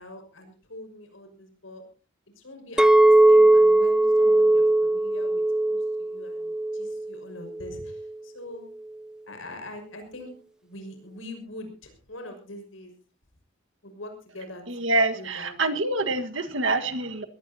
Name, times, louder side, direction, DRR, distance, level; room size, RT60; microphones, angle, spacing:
voice 1, 0.0-1.8 2.4-8.6 9.3-10.3 10.6-12.9 13.8-14.6 15.1-15.6, left 1 dB, 80° left, 5 dB, 5.9 m, -43 dB
Chink clink, 2.8-7.1 7.6-8.0, right 2 dB, 5° right, 0.7 m, -19 dB
voice 2, 14.7-17.2, right 2 dB, 70° right, 7 dB, 1.7 m, -26 dB
22.0 x 17.5 x 2.9 m, 0.35 s
head